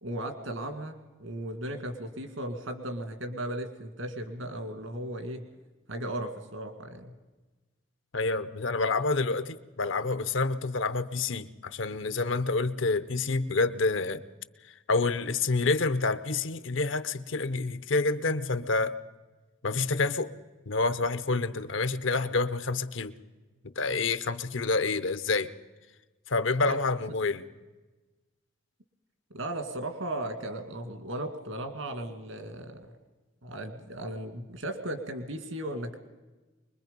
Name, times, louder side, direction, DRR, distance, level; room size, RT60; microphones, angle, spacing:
voice 1, 0.0-5.4 5.9-7.2 26.7-26.8 29.3-32.9 33.4-36.0, right 1 dB, 85° right, 6 dB, 2.2 m, -36 dB
voice 2, 8.1-14.2 14.9-18.9 19.6-20.3 20.7-23.1 23.8-25.5 26.3-27.4, left 3 dB, 75° left, 13 dB, 0.8 m, -28 dB
24.0 x 21.5 x 5.3 m, 1.2 s
head